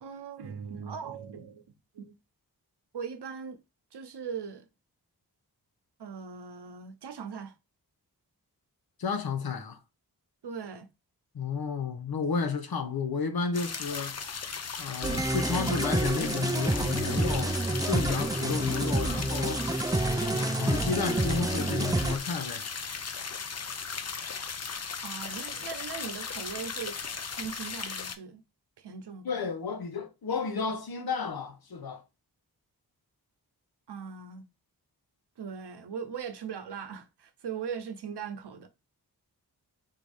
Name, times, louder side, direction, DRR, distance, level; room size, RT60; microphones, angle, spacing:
voice 1, 0.0-1.6 1.9-2.2 2.9-3.6 3.9-4.6 6.0-7.6 10.4-10.9 25.0-27.0 27.3-28.4 28.8-29.5 33.9-34.5 35.4-38.7, right 6 dB, 85° right, 0.8 m, -39 dB
voice 2, 9.0-9.8 11.3-14.2 14.8-17.6 17.9-19.6 20.5-22.7 29.2-32.0, left 5 dB, 65° left, 0.8 m, -32 dB
sound 1, 13.5-28.1, left 5 dB, 40° left, 0.6 m, -37 dB
sound 2, 15.0-22.2, right 2 dB, 10° right, 0.3 m, -28 dB
3.9 x 2.7 x 4.8 m
wide cardioid pair, 85°, 39 cm